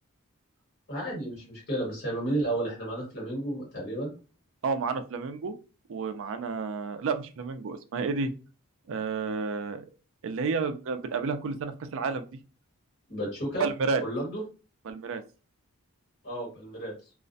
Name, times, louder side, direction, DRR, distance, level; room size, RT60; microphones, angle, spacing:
voice 1, 0.9-4.1 13.1-13.7 14.0-14.4 16.2-16.9, right 1 dB, 50° left, -4 dB, 1.4 m, -32 dB
voice 2, 4.6-5.5 5.9-8.3 8.9-9.9 10.2-12.2 13.6-14.0 14.9-15.2, right 4 dB, 60° right, 8 dB, 0.4 m, -30 dB
2.4 x 2.1 x 2.6 m, 0.34 s
head